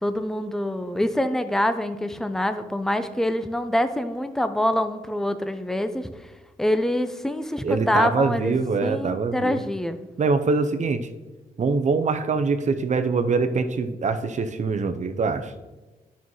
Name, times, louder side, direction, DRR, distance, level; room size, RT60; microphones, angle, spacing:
voice 1, 0.0-6.1 6.6-10.0, left 1 dB, 5° left, 10 dB, 0.6 m, -25 dB
voice 2, 7.6-9.6 10.2-11.0 11.6-15.5, right 4 dB, 50° right, 9 dB, 0.7 m, -24 dB
11.0 x 5.7 x 3.1 m, 1.2 s
cardioid pair, 60°, 16 cm